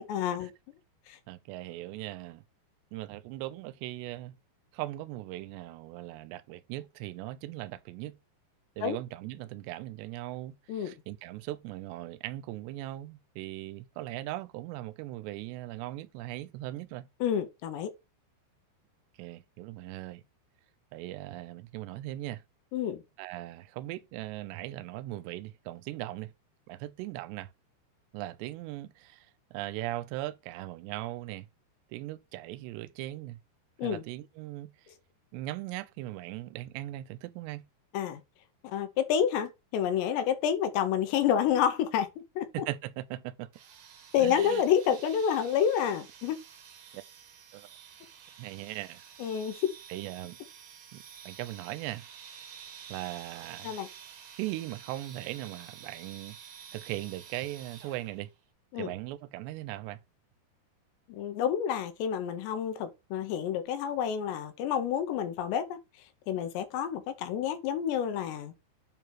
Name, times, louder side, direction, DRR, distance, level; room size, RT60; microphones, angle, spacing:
voice 1, 0.1-0.5 1.1-1.2 8.8-9.0 10.7-10.9 17.2-17.9 22.7-23.0 33.8-34.0 37.9-38.2 38.6-42.1 42.4-42.5 44.1-46.4 49.2-49.7 53.6-53.9 58.7-58.9 61.1-65.8 66.3-68.5, left 9 dB, 80° left, 2.8 m, -29 dB
voice 2, 1.3-2.4 2.9-4.4 4.7-8.2 8.8-17.1 19.2-20.2 20.9-22.4 23.2-26.3 26.7-27.5 28.1-31.5 31.9-33.4 33.8-34.7 35.3-37.7 42.5-43.5 44.2-44.6 46.9-47.0 47.5-47.7 48.4-49.0 49.9-50.4 50.9-52.1 52.9-53.8 54.4-56.4 56.7-58.3 58.8-60.0, right 16 dB, 85° right, 2.6 m, -39 dB
sound 1, 43.5-58.3, right 8 dB, 65° right, 2.9 m, -50 dB
9.1 x 3.3 x 4.5 m
omnidirectional pair, 5.4 m